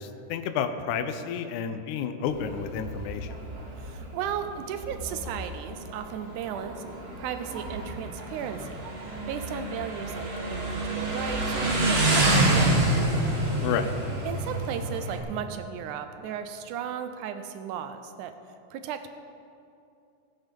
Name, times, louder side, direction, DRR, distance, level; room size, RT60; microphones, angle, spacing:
voice 1, 0.0-3.4 13.6-13.9, left 7 dB, 75° left, 8 dB, 2.1 m, -30 dB
Motorcycle, 2.3-15.2, right 2 dB, 40° right, 0.8 m, -28 dB
voice 2, 3.8-6.7 7.2-8.8 9.3-12.9 14.3-18.3 18.7-19.1, right 8 dB, 80° right, 8 dB, 2.1 m, -35 dB
15.5 x 9.1 x 5.3 m, 2.6 s
omnidirectional pair, 3.7 m